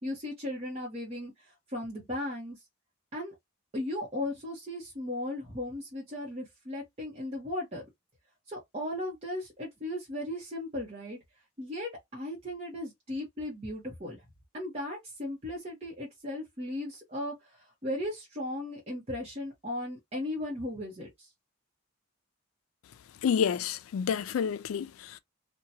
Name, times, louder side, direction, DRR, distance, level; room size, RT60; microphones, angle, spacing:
voice 1, 0.0-2.6 3.1-3.3 3.7-7.8 8.5-11.2 11.6-14.2 14.5-21.3, left 1 dB, 30° right, 0.9 m, -36 dB
voice 2, 23.2-25.2, left 7 dB, 85° left, 0.3 m, -29 dB
2.8 x 2.2 x 2.7 m
head